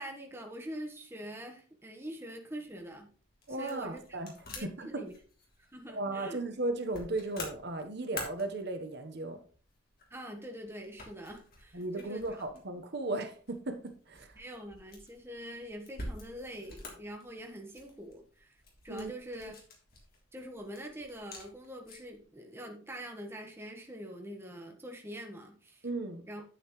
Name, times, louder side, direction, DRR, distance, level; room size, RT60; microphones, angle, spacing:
voice 1, 0.0-3.1 3.6-4.2 4.5-5.1 5.7-6.4 10.1-12.2 14.4-18.5 18.8-19.6 20.3-25.9 26.3-26.4, equal, 10° right, 1.4 m, -44 dB
sound 1, 2.7-22.2, left 2 dB, 50° left, 3.3 m, -49 dB
voice 2, 3.5-4.3 4.6-5.0 5.9-9.4 11.7-14.4 18.9-19.5 25.8-26.2, right 2 dB, 55° right, 1.2 m, -36 dB
9.0 x 8.9 x 3.2 m
head